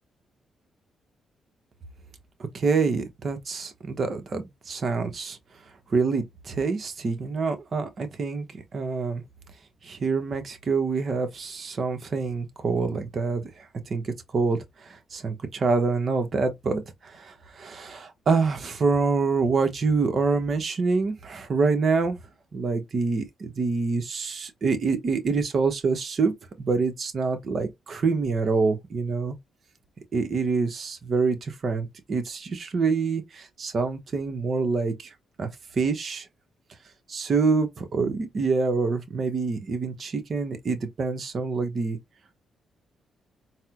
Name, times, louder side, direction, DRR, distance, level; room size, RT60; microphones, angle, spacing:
voice 1, 2.5-5.4 5.9-8.5 8.7-9.2 9.8-22.2 22.5-26.3 26.6-29.4 30.1-35.1 35.4-36.3 37.1-42.0, right 4 dB, 55° right, 0.9 m, -26 dB
4.1 x 2.1 x 2.4 m
cardioid pair, 70°, 0 cm